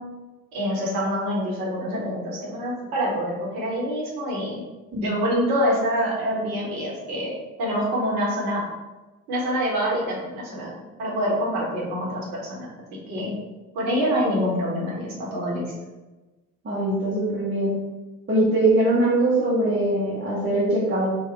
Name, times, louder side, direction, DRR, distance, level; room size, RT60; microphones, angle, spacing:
voice 1, 0.5-4.6 5.0-7.3 7.6-8.6 9.3-10.7 11.0-12.7 13.1-13.3 13.7-15.7, equal, 55° right, -4 dB, 1.3 m, -26 dB
voice 2, 16.6-17.8 18.3-21.2, right 1 dB, 25° right, -9 dB, 1.0 m, -22 dB
4.0 x 2.3 x 3.2 m, 1.2 s
figure-of-eight pair, 50°, 42 cm